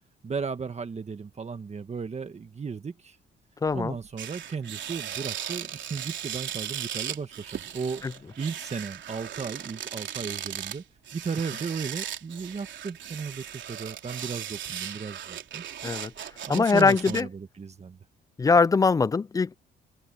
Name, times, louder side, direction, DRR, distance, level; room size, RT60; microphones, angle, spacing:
voice 1, 0.2-3.2 3.7-10.8 11.1-15.6 16.4-18.0, right 5 dB, 35° right, 1.5 m, -35 dB
voice 2, 3.6-4.0 8.0-8.1 15.8-17.3 18.4-19.6, left 4 dB, 20° left, 0.3 m, -22 dB
sound 1, 3.7-3.8 4.2-17.2, right 10 dB, 70° right, 3.6 m, -37 dB
cardioid pair, 90°, 20 cm